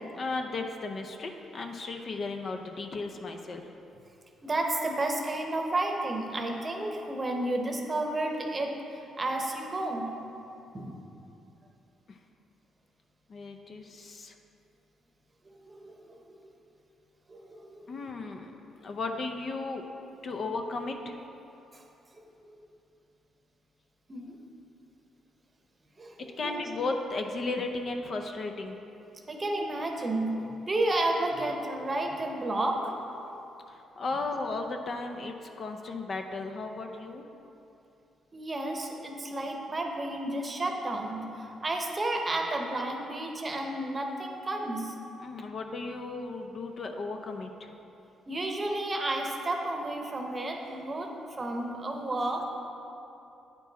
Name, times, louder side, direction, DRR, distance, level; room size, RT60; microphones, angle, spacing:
voice 1, 0.1-3.6 12.1-12.2 13.3-14.3 17.9-19.8 20.2-21.1 26.4-28.8 33.7-37.3 45.2-47.7, left 3 dB, 50° left, 4 dB, 0.5 m, -35 dB
voice 2, 4.4-10.2 10.7-11.1 15.6-16.4 17.3-17.8 21.7-21.8 22.1-22.5 24.1-24.4 26.0-26.7 29.3-30.4 30.7-32.9 38.3-44.9 48.3-51.1 51.4-52.4, right 2 dB, 30° right, 2 dB, 0.8 m, -32 dB
9.2 x 4.5 x 4.0 m, 2.8 s
cardioid pair, 90°, 0 cm